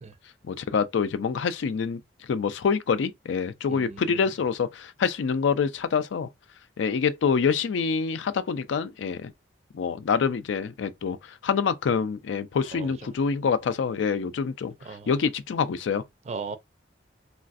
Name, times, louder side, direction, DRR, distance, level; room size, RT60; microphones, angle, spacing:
voice 1, 0.5-2.0 2.3-6.3 6.8-9.3 9.7-14.7 15.1-16.0, left 6 dB, 75° left, 0.4 m, -26 dB
voice 2, 3.7-4.2 12.7-12.9 14.8-15.1 16.3-16.6, right 4 dB, 35° right, 0.4 m, -37 dB
3.2 x 2.4 x 2.4 m
head